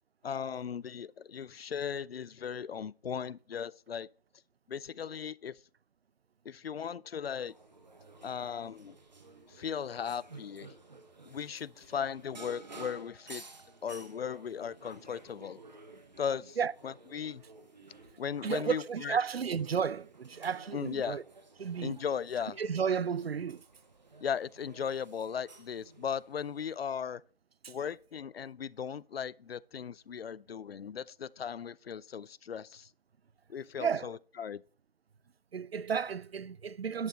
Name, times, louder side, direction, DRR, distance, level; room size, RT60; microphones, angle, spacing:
voice 1, 0.2-4.1 4.7-5.6 6.5-7.5 8.2-9.0 9.5-10.7 11.3-13.4 13.8-15.6 16.2-16.6 16.8-17.4 18.2-19.2 20.7-21.2 21.8-22.6 24.2-27.2 27.7-32.9 33.5-34.6, left 7 dB, 75° left, 0.5 m, -37 dB
sound 1, 7.5-26.8, right 3 dB, 45° right, 1.3 m, -54 dB
voice 2, 18.4-21.2 21.6-22.0 22.6-23.6 27.6-27.7 33.8-34.1 35.5-37.1, right 6 dB, 85° right, 0.5 m, -32 dB
10.5 x 6.3 x 3.9 m
figure-of-eight pair, 170°, 30 cm